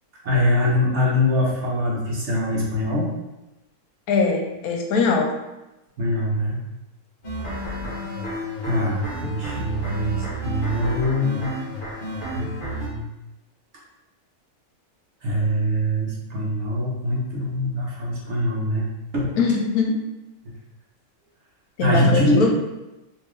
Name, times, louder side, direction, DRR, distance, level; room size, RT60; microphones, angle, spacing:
voice 1, 0.2-3.1 6.0-6.6 8.6-11.6 12.3-13.1 15.2-18.9 19.1-19.4 21.8-22.5, left 1 dB, 55° right, -4 dB, 1.0 m, -23 dB
voice 2, 4.1-5.4 19.4-20.0 21.8-22.5, left 4 dB, 80° left, 1 dB, 1.1 m, -21 dB
sound 1, 7.2-12.9, right 1 dB, 40° left, 1.2 m, -31 dB
3.6 x 2.8 x 3.1 m, 1.0 s
omnidirectional pair, 1.6 m